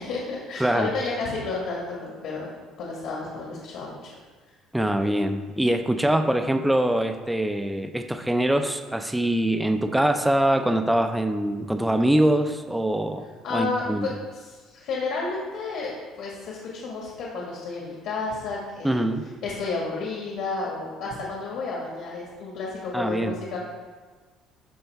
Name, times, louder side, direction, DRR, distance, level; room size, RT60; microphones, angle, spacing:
voice 1, 0.0-2.5 2.8-4.1 13.4-15.9 16.2-19.0 19.4-23.6, left 3 dB, 70° left, -3 dB, 1.6 m, -31 dB
voice 2, 0.6-0.9 4.7-13.3 13.5-14.1 18.8-19.2 22.9-23.3, right 1 dB, 5° right, 6 dB, 0.4 m, -23 dB
12.5 x 4.4 x 3.4 m, 1.4 s
cardioid pair, 155°, 0 cm